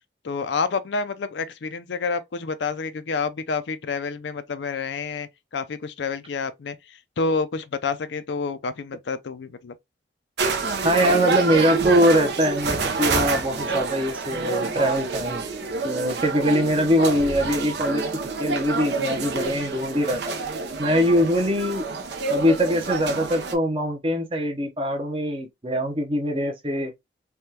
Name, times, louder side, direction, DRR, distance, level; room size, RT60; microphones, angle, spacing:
voice 1, 0.2-6.8 7.2-9.7, left 4 dB, 75° left, 0.5 m, -28 dB
sound 1, 10.4-23.5, right 4 dB, 65° right, 0.7 m, -27 dB
voice 2, 10.8-15.4 15.8-18.0 18.4-20.3 20.8-21.9 22.3-26.9, equal, 30° right, 0.7 m, -22 dB
3.5 x 2.3 x 2.7 m
head